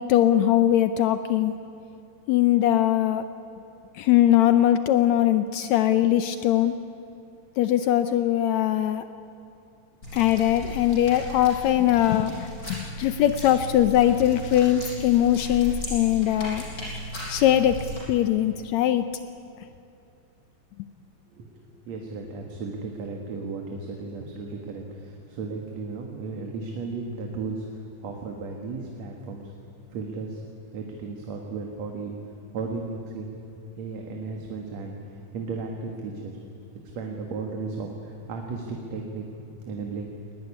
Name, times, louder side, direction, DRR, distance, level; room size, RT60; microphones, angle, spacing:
voice 1, 0.0-1.5 2.3-3.2 3.9-6.7 7.6-9.0 10.1-16.6 17.3-19.1, left 12 dB, 75° left, 11 dB, 1.9 m, -21 dB
sound 1, 10.0-18.0, left 1 dB, 30° left, 5.7 m, -36 dB
voice 2, 21.3-29.5 29.9-30.4 30.7-32.2 32.5-33.3 33.8-36.4 37.0-40.1, right 4 dB, 65° right, 2 dB, 2.8 m, -35 dB
21.0 x 19.0 x 9.9 m, 2.7 s
omnidirectional pair, 3.3 m